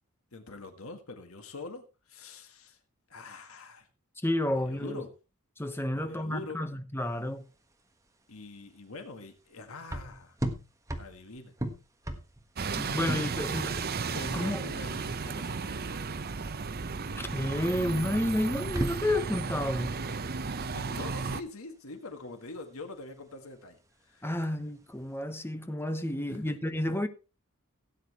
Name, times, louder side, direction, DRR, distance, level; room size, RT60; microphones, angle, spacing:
voice 1, 0.3-2.8 3.1-3.9 4.5-5.1 5.9-6.6 8.3-10.4 11.0-11.5 13.4-13.9 14.1-16.1 20.5-24.5 26.3-26.6, left 3 dB, 70° left, 1.8 m, -44 dB
voice 2, 4.2-5.0 5.6-7.5 12.8-13.8 14.3-14.7 17.2-20.0 24.2-27.1, left 1 dB, 10° left, 1.0 m, -31 dB
sound 1, 7.0-25.2, right 1 dB, 15° right, 1.3 m, -40 dB
Bus, 12.6-21.4, right 4 dB, 45° right, 0.7 m, -34 dB
17.0 x 9.0 x 3.0 m
head